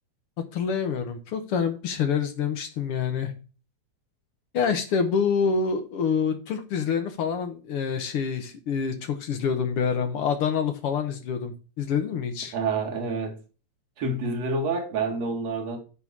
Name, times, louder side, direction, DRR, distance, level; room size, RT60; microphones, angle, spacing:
voice 1, 0.5-3.3 4.5-12.5, left 6 dB, 60° left, 1.6 m, -26 dB
voice 2, 12.5-13.4 14.0-15.8, right 3 dB, 60° right, 2.9 m, -28 dB
9.5 x 4.0 x 6.0 m
omnidirectional pair, 3.4 m